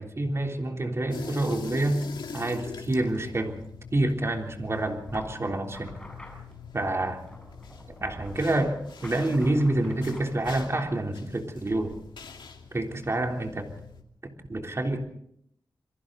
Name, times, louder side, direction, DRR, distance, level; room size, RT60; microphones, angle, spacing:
voice 1, 0.0-2.1 2.3-3.6 3.9-6.0 6.7-7.2 8.0-12.0 12.7-13.7 14.2-15.1, right 1 dB, 35° right, 3 dB, 3.4 m, -28 dB
sound 1, 1.1-14.0, left 5 dB, 90° left, 2.4 m, -44 dB
sound 2, 5.1-10.8, left 1 dB, 10° left, 6.8 m, -46 dB
28.5 x 22.5 x 4.0 m, 0.69 s
wide cardioid pair, 95°, 8 cm